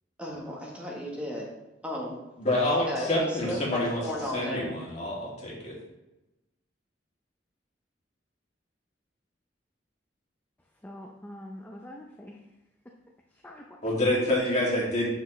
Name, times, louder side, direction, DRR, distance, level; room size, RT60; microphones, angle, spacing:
voice 1, 0.2-1.5 1.8-2.2 2.8-4.7, left 1 dB, 5° right, -3 dB, 1.1 m, -34 dB
voice 2, 2.4-4.0 4.3-5.8 13.8-15.1, left 1 dB, 40° left, -5 dB, 2.3 m, -27 dB
voice 3, 10.8-12.4 13.3-13.7 14.6-14.7, left 1 dB, 10° left, 0 dB, 0.5 m, -44 dB
7.6 x 5.9 x 3.1 m, 0.98 s
head